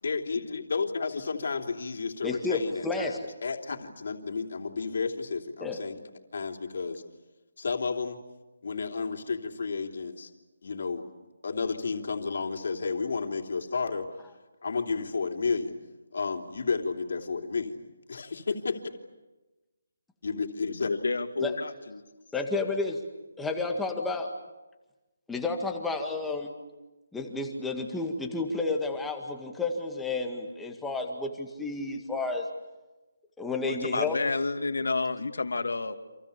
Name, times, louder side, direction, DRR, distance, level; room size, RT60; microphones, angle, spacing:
voice 1, 0.0-6.0 6.3-7.0 7.6-8.2 8.6-10.3 10.6-11.0 11.4-14.1 14.6-15.7 16.1-17.8 18.1-18.8 20.2-20.9, left 4 dB, 55° left, 3 dB, 3.3 m, -32 dB
voice 2, 2.2-3.2 5.6-5.8 21.4-21.5 22.3-22.9 23.4-24.3 25.3-26.5 27.1-32.5 33.4-34.2, left 3 dB, 5° left, 2 dB, 2.0 m, -31 dB
voice 3, 20.6-22.0 33.7-35.9, left 3 dB, 80° left, 7 dB, 2.6 m, -30 dB
29.5 x 27.5 x 7.1 m, 1.1 s
hypercardioid pair, 175°, 0 cm